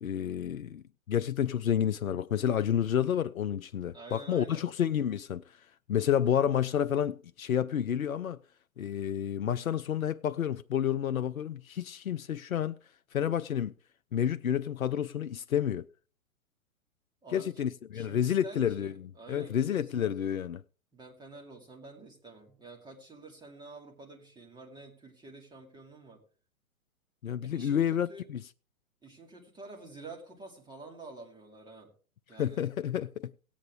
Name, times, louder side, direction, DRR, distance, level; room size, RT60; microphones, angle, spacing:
voice 1, 0.0-5.6 5.9-8.4 8.8-12.8 13.1-13.7 14.1-15.9 17.3-20.6 27.2-28.4 32.4-33.3, left 9 dB, 80° left, 0.5 m, -30 dB
voice 2, 3.9-4.7 17.2-17.7 17.9-20.4 20.9-26.2 27.4-28.2 29.0-31.9 32.3-32.6, right 3 dB, 10° right, 2.5 m, -49 dB
17.0 x 8.5 x 3.5 m
figure-of-eight pair, 110°, 41 cm